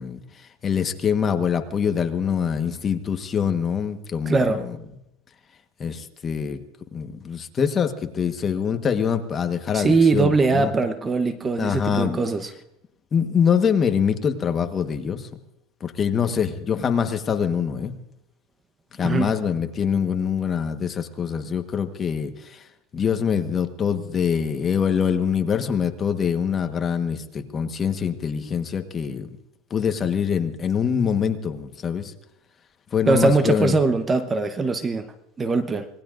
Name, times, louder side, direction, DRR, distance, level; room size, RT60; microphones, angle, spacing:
voice 1, 0.0-4.8 5.8-6.6 6.9-10.7 11.6-12.2 13.1-15.3 15.8-17.9 18.9-22.7 22.9-29.3 29.7-32.1 32.9-33.8, left 7 dB, 30° left, 7 dB, 1.3 m, -24 dB
voice 2, 4.3-4.6 9.7-12.5 19.0-19.3 33.1-35.9, right 3 dB, 20° right, 10 dB, 1.0 m, -21 dB
25.5 x 19.5 x 2.6 m, 0.91 s
supercardioid pair, 130°, 0 cm